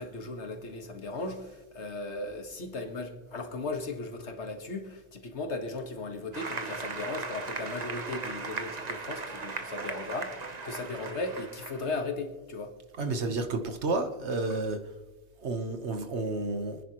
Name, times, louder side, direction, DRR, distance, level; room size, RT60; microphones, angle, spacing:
voice 1, 0.0-12.7, left 3 dB, 85° left, 5 dB, 1.8 m, -37 dB
Applause, 6.3-12.0, right 4 dB, 40° right, 1.1 m, -38 dB
voice 2, 13.0-14.8 15.4-16.8, right 3 dB, 80° right, 7 dB, 1.5 m, -31 dB
26.0 x 10.0 x 3.1 m, 1.1 s
omnidirectional pair, 1.1 m